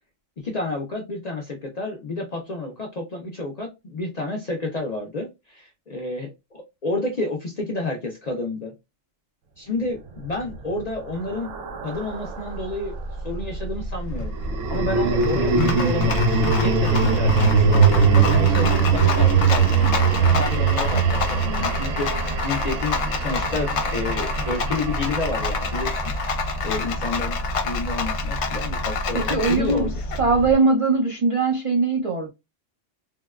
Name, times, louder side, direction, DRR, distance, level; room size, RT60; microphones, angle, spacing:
voice 1, 0.4-8.7 9.6-11.5 11.8-13.0 13.2-14.4 14.7-29.9, left 2 dB, 50° left, 0.5 m, -30 dB
sound 1, 10.2-12.7 14.3-26.6, right 5 dB, 90° right, 1.0 m, -22 dB
Rattle, 11.9-30.5, left 2 dB, 70° left, 0.9 m, -27 dB
voice 2, 29.1-29.8 30.2-32.3, right 3 dB, 55° right, 0.3 m, -20 dB
3.5 x 2.2 x 2.3 m
omnidirectional pair, 1.3 m